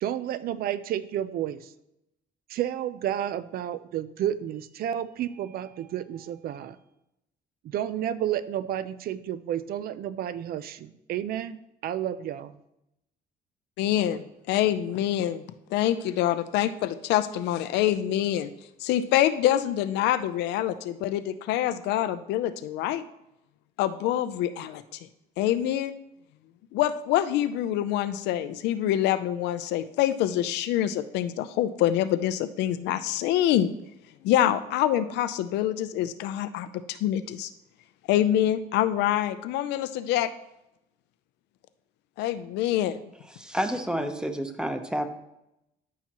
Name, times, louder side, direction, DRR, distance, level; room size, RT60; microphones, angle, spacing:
voice 1, 0.0-1.7 2.5-6.8 7.6-12.6, right 11 dB, 65° right, 15 dB, 0.6 m, -31 dB
voice 2, 13.8-18.5 18.8-23.0 23.8-25.0 25.4-25.9 26.7-33.7 34.2-37.5 38.1-40.3 42.2-43.0, left 12 dB, 85° left, 12 dB, 0.6 m, -26 dB
voice 3, 43.3-45.1, equal, 5° right, 7 dB, 0.9 m, -29 dB
13.0 x 5.8 x 3.0 m, 0.85 s
cardioid pair, 110°, 17 cm